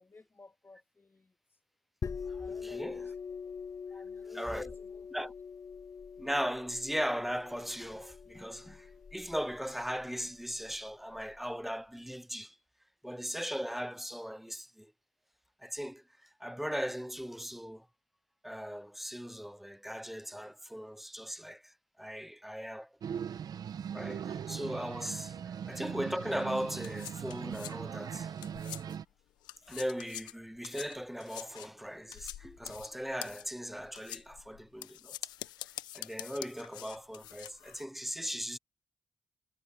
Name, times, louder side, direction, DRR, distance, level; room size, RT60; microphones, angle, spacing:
voice 1, 0.0-1.4 2.4-3.5 3.9-5.3 29.6-29.7, left 3 dB, 30° left, 2.4 m, -53 dB
sound 1, 2.0-11.4, left 6 dB, 50° left, 2.0 m, -44 dB
voice 2, 2.3-3.0 4.3-4.7 5.1-5.3 6.2-12.6 13.0-14.9 15.6-17.9 18.4-21.7 22.0-22.9 23.9-28.3 29.7-35.2 35.9-38.6, equal, ahead, 0.4 m, -38 dB
sound 2, 23.0-29.0, right 8 dB, 65° right, 1.1 m, -40 dB
sound 3, 26.3-29.1 29.4-37.8, left 14 dB, 80° left, 1.0 m, -46 dB
hypercardioid pair, 40°, 7 cm